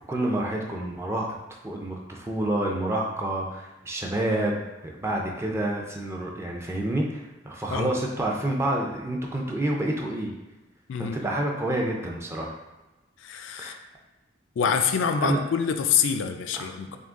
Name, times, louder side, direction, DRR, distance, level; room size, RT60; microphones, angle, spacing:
voice 1, 0.1-1.3 1.6-10.3 11.0-12.5 13.6-13.8 15.2-15.4 16.5-17.0, right 1 dB, 15° right, 0 dB, 0.4 m, -28 dB
voice 2, 10.9-11.3 13.2-13.7 14.6-17.0, left 6 dB, 75° left, 7 dB, 0.3 m, -26 dB
3.7 x 2.8 x 3.6 m, 1.1 s
head